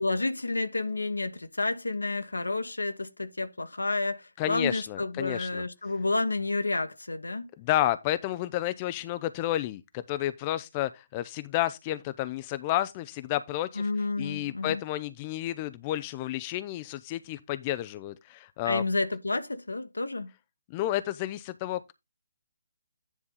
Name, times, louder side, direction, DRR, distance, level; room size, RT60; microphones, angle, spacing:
voice 1, 0.0-7.5 13.7-14.8 18.6-20.3, left 3 dB, 80° left, 1.3 m, -30 dB
voice 2, 4.4-5.6 7.6-13.8 14.2-18.8 20.7-21.9, left 14 dB, 25° left, 0.5 m, -31 dB
10.0 x 3.5 x 5.5 m
figure-of-eight pair, 140°, 0 cm